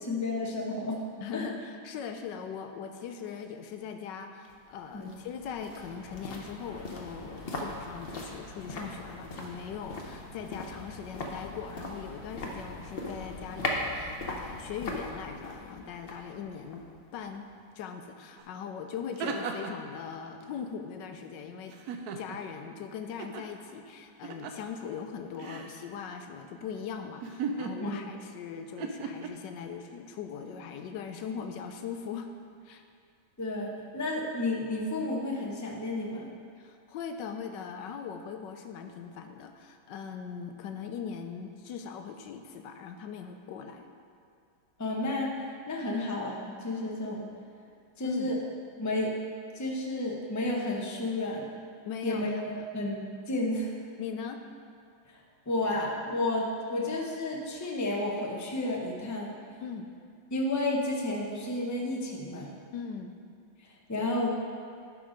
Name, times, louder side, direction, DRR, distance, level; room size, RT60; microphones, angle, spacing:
voice 1, 0.0-1.0 1.3-1.5 4.9-5.1 27.8-28.0 33.4-36.3 44.8-47.3 48.0-48.4 48.8-49.1 49.5-51.5 52.0-53.7 55.1-59.3 60.3-62.5 63.6-64.4, left 2 dB, 25° left, -1 dB, 0.4 m, -31 dB
voice 2, 1.2-1.5 1.8-16.8 17.1-17.5 17.7-21.7 22.2-32.3 32.6-32.8 36.6-43.8 48.0-48.3 51.8-52.7 54.0-54.4 59.6-59.9 62.7-63.2, left 7 dB, 75° left, 6 dB, 1.3 m, -40 dB
sound 1, 4.4-17.6 17.9-18.0, left 2 dB, 50° left, 0.7 m, -39 dB
sound 2, 18.4-18.5 18.9-19.9 21.7-22.5 23.2-23.5 24.2-24.7 25.4-25.7 27.2-28.2 28.8-29.3, right 5 dB, 70° right, 1.0 m, -36 dB
11.0 x 4.7 x 5.1 m, 2.3 s
omnidirectional pair, 2.0 m